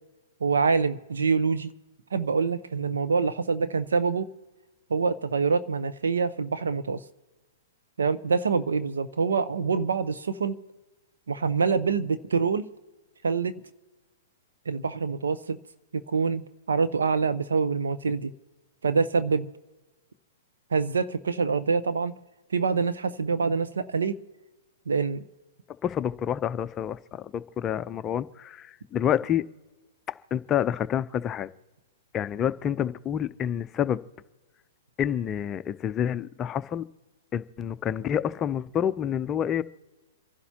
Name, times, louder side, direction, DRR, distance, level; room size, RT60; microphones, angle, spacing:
voice 1, 0.4-1.7 2.1-4.3 4.9-7.0 8.0-10.6 11.3-12.7 13.2-13.5 14.7-15.6 15.9-18.3 18.8-19.5 20.7-22.2 22.5-24.2 24.9-25.2, right 5 dB, 85° right, 0.9 m, -25 dB
voice 2, 25.8-29.5 30.1-31.5 32.1-34.0 35.0-36.9 37.3-39.6, left 9 dB, 25° left, 0.5 m, -28 dB
28.0 x 11.5 x 2.9 m
hypercardioid pair, 125°, 0 cm